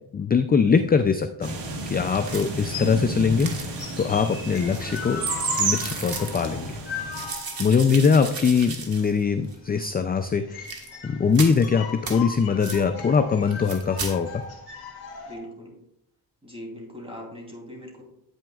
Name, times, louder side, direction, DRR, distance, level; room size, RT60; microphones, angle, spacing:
voice 1, 0.1-1.6 1.9-5.2 5.6-6.8 7.6-10.7 11.0-14.4, left 5 dB, 25° left, 8 dB, 0.3 m, -22 dB
sound 1, 1.4-7.3, right 3 dB, 80° right, 1.4 m, -31 dB
sound 2, 2.2-2.7 3.4-4.0 4.5-6.5 7.1-9.2 9.5-9.6 10.6-10.9 11.3-11.6 12.0-12.2 12.6-12.8 13.5-14.1, right 4 dB, 60° right, 1.5 m, -36 dB
sound 3, 2.7-15.4, left 6 dB, 60° left, 2.0 m, -39 dB
voice 2, 7.7-8.1 15.3-15.8 16.4-18.0, equal, 15° right, -1 dB, 3.0 m, -40 dB
9.1 x 8.7 x 2.4 m, 0.78 s
cardioid pair, 100°, 42 cm